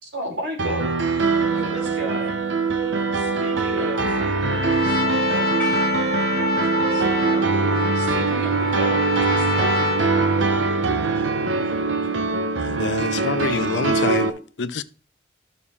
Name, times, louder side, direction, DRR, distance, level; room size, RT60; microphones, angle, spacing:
voice 1, 0.0-1.0 1.5-2.3 3.1-4.1 6.9-7.0 7.9-9.9, right 1 dB, 70° right, 4.4 m, -33 dB
Piano, 0.6-14.3, right 4 dB, 90° right, 1.0 m, -22 dB
voice 2, 1.3-2.2 2.8-3.6 4.4-5.8 6.5-7.9 10.3-10.6 11.0-12.3, left 1 dB, 30° right, 5.5 m, -42 dB
Trumpet, 3.9-10.7, left 2 dB, 55° left, 1.4 m, -26 dB
Percussion / Church bell, 5.6-10.7, equal, 5° left, 3.0 m, -34 dB
voice 3, 12.6-14.3 14.6-14.8, left 4 dB, 75° left, 0.6 m, -26 dB
12.5 x 6.4 x 3.7 m
head